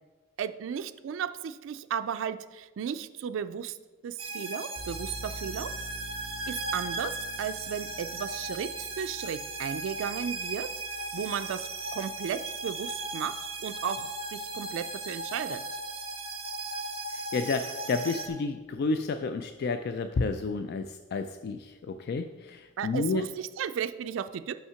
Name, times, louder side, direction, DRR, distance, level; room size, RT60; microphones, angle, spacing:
voice 1, 0.4-3.8 4.0-5.7 6.5-10.7 11.1-15.6 22.8-24.5, right 8 dB, 70° right, 10 dB, 0.3 m, -35 dB
sound 1, 4.2-18.3, right 2 dB, 30° right, 0.8 m, -37 dB
sound 2, 4.8-16.1, right 1 dB, 25° left, 2.7 m, -49 dB
voice 2, 17.1-23.3, left 3 dB, 55° left, 8 dB, 0.3 m, -31 dB
5.7 x 5.6 x 5.6 m, 1.2 s
head